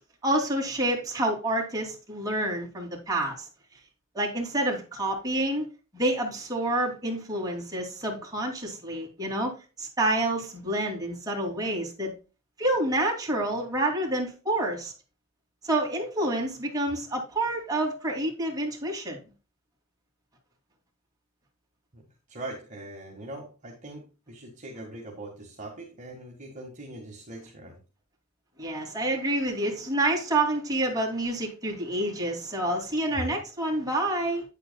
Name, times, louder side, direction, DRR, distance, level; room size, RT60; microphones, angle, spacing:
voice 1, 0.2-3.5 4.1-5.6 5.9-9.5 9.8-12.1 12.6-14.9 15.6-19.2 28.6-34.4, right 1 dB, 20° right, 2.7 m, -28 dB
voice 2, 21.9-27.8 33.1-33.4, right 1 dB, 35° right, 1.8 m, -41 dB
9.5 x 8.3 x 2.3 m
head